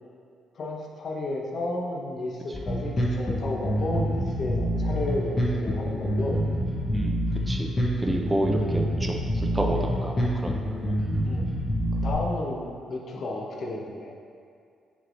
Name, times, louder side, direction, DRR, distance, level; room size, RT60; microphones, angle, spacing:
voice 1, 0.6-6.4 8.3-8.4 11.2-11.5 12.0-14.1, left 2 dB, 55° left, -1 dB, 0.7 m, -32 dB
Bass guitar, 2.5-12.1, equal, 25° left, 0.8 m, -27 dB
voice 2, 8.0-10.9, right 1 dB, 15° right, 1 dB, 0.4 m, -30 dB
6.2 x 3.2 x 2.5 m, 2.3 s
cardioid pair, 90°, 0 cm